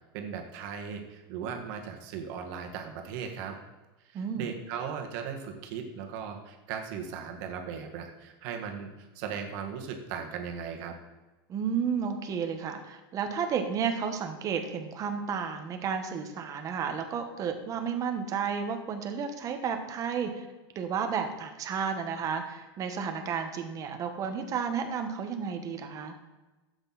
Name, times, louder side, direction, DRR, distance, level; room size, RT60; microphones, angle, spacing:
voice 1, 0.0-3.6 4.0-8.9 9.1-11.0, right 7 dB, 50° right, 3 dB, 1.7 m, -38 dB
voice 2, 4.1-4.5 11.5-20.5 20.7-26.2, right 6 dB, 25° right, 6 dB, 1.2 m, -32 dB
12.0 x 8.1 x 4.1 m, 1.1 s
supercardioid pair, 155°, 13 cm